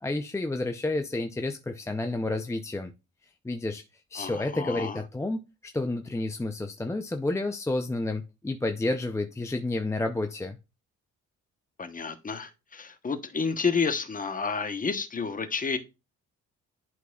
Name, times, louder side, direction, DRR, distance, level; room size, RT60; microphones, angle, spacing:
voice 1, 0.0-2.9 3.4-3.8 4.1-10.6, left 2 dB, 10° left, 0.5 m, -30 dB
voice 2, 4.2-5.0 11.8-15.8, left 5 dB, 25° left, 1.0 m, -30 dB
11.0 x 4.0 x 2.3 m
cardioid pair, 90°, 30 cm